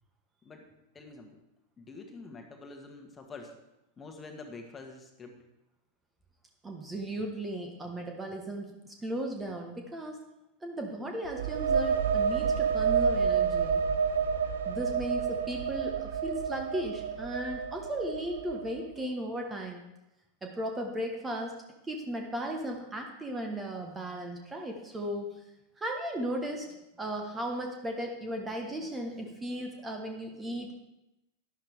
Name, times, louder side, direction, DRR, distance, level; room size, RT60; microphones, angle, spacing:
voice 1, 0.9-1.4 1.8-3.5 4.0-5.4, left 3 dB, 20° left, 3 dB, 1.6 m, -46 dB
voice 2, 6.6-10.2 10.6-13.8 14.6-19.8 20.4-21.6 21.9-25.3 25.8-30.7, right 1 dB, 15° right, 2 dB, 1.4 m, -36 dB
sound 1, 11.2-18.8, right 6 dB, 60° right, 0.6 m, -29 dB
11.5 x 11.0 x 3.5 m, 0.92 s
figure-of-eight pair, 90°, 0 cm